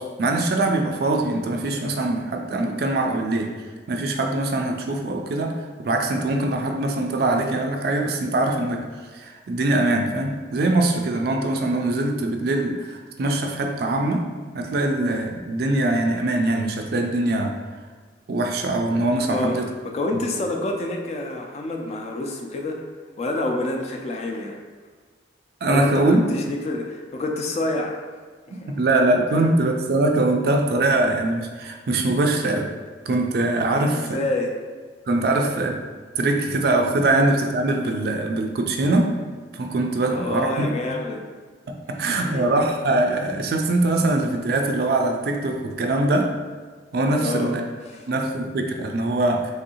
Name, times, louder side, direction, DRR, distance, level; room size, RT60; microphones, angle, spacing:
voice 1, 0.0-3.5 3.9-8.8 9.1-14.3 14.5-17.5 18.3-19.7 25.6-26.2 28.5-32.7 33.1-34.1 35.1-35.8 36.2-39.2 39.5-40.7 41.7-46.3 46.9-47.6 48.1-49.5, right 2 dB, 55° right, 3 dB, 0.3 m, -22 dB
voice 2, 19.3-22.8 23.2-24.6 25.7-28.0 28.5-28.8 33.7-34.5 40.1-41.2 42.1-42.5 47.2-47.6 47.9-48.0, left 2 dB, 35° left, 2 dB, 0.3 m, -28 dB
3.4 x 2.6 x 2.7 m, 1.5 s
head